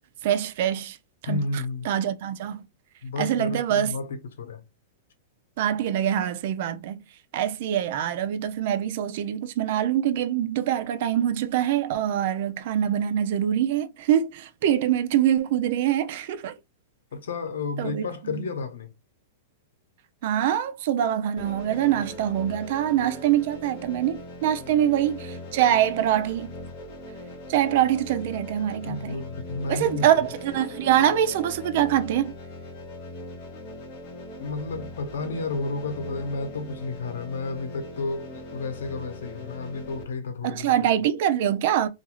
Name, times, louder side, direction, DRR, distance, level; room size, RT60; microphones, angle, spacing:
voice 1, 0.2-1.0 1.2-2.6 3.2-3.9 5.6-7.0 7.3-16.5 17.8-18.1 20.2-26.5 27.5-29.2 29.7-32.3 40.4-41.9, right 10 dB, 50° right, 0.4 m, -24 dB
voice 2, 1.3-1.9 3.0-4.6 17.1-18.9 28.8-30.1 34.4-40.9, left 3 dB, 90° left, 0.7 m, -32 dB
sound 1, 21.4-40.0, left 1 dB, 40° left, 0.8 m, -40 dB
2.5 x 2.4 x 2.9 m
supercardioid pair, 165°, 0 cm